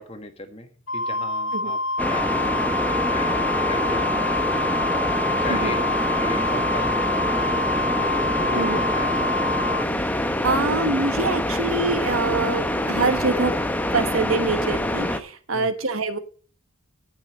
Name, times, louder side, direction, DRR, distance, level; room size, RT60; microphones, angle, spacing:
voice 1, 0.0-1.8 2.0-4.6 5.4-5.8 6.2-7.8 8.4-9.1 15.5-15.7, left 1 dB, 30° left, 6 dB, 1.4 m, -37 dB
Wind instrument woodwind instrument, 0.9-9.8, left 1 dB, 65° left, 0.8 m, -26 dB
sound 1, 2.0-15.2, left 1 dB, 10° left, 0.7 m, -25 dB
voice 2, 10.2-13.5 13.9-16.2, right 3 dB, 75° right, 9 dB, 1.2 m, -25 dB
12.0 x 5.7 x 6.4 m, 0.41 s
head